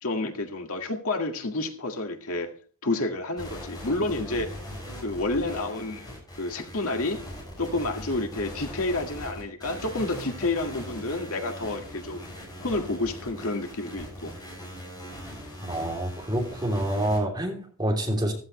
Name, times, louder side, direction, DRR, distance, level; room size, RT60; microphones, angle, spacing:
voice 1, 0.0-2.5 2.8-4.5 5.0-7.2 7.6-12.3 12.6-14.3, left 2 dB, 85° left, 1.9 m, -29 dB
sound 1, 3.4-17.2, equal, 20° left, 6.9 m, -40 dB
voice 2, 15.6-18.3, right 1 dB, 20° right, 3.1 m, -27 dB
15.0 x 14.0 x 3.2 m
head